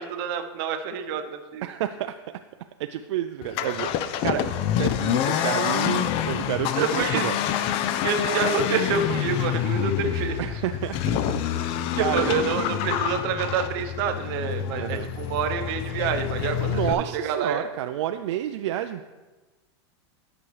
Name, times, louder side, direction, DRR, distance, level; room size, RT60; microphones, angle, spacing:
voice 1, 0.0-1.7 6.7-7.2 8.0-10.4 12.0-17.7, right 6 dB, 55° right, 7 dB, 0.8 m, -27 dB
voice 2, 1.6-2.1 2.8-7.3 10.4-12.3 14.8-15.1 16.7-19.0, right 12 dB, 75° right, 7 dB, 0.4 m, -30 dB
Accelerating revving vroom, 3.4-16.9, left 10 dB, 40° left, 0.4 m, -27 dB
Livestock farm animals working animals, 4.9-6.0 6.3-7.3 7.6-8.9 9.4-9.8, left 1 dB, 15° left, 1.4 m, -46 dB
11.0 x 6.0 x 3.2 m, 1.2 s
supercardioid pair, 135°, 15 cm